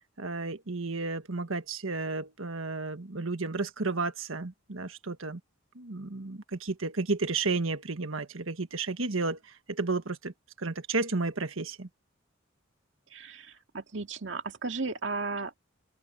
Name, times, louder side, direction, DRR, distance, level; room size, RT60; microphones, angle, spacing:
voice 1, 0.2-5.4 5.7-11.9, right 3 dB, 85° right, 1.5 m, -32 dB
voice 2, 13.1-15.6, right 3 dB, 65° right, 2.2 m, -35 dB
open air
head